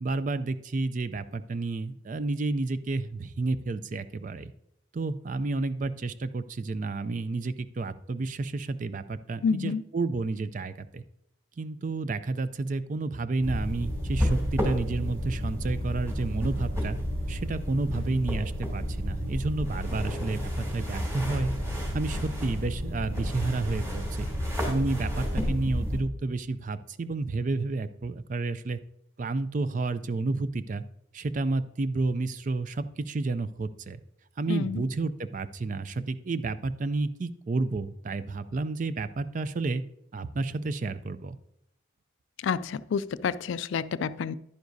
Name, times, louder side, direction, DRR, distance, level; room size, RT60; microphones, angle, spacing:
voice 1, 0.0-4.5 4.9-11.0 11.6-17.0 17.3-21.5 21.9-24.3 24.7-28.8 29.2-30.8 31.1-34.0 34.4-39.8 40.1-41.4, right 3 dB, 40° right, 13 dB, 0.4 m, -30 dB
voice 2, 9.4-9.8 34.5-34.9 42.4-44.3, left 6 dB, 70° left, 16 dB, 0.3 m, -29 dB
sound 1, 13.4-26.0, equal, 15° right, 2.5 m, -31 dB
10.5 x 9.5 x 2.7 m, 0.78 s
head